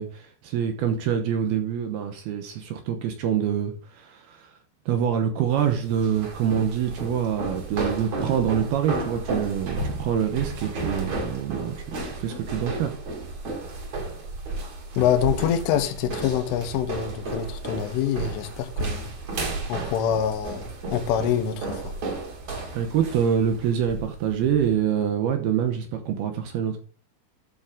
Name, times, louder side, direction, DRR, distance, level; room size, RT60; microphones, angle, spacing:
voice 1, 0.0-4.5 4.9-13.0 22.7-26.8, right 8 dB, 75° right, 2.4 m, -26 dB
sound 1, 5.5-24.7, right 2 dB, 40° right, 3.5 m, -33 dB
voice 2, 15.0-19.1 19.7-21.9, left 9 dB, 85° left, 3.6 m, -25 dB
12.5 x 7.1 x 3.6 m
omnidirectional pair, 5.6 m